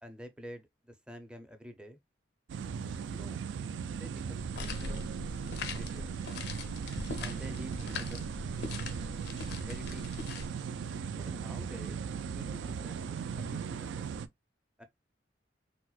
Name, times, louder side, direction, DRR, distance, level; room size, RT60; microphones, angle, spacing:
voice 1, 0.0-2.0 3.1-3.4 3.9-5.0 5.6-6.2 7.2-8.3 9.6-10.3 11.1-14.1 14.8-14.9, equal, 5° right, 0.5 m, -49 dB
sound 1, 2.5-14.3, right 6 dB, 85° right, 0.3 m, -38 dB
sound 2, 4.4-10.5, left 3 dB, 60° left, 0.5 m, -41 dB
4.1 x 2.1 x 2.3 m
head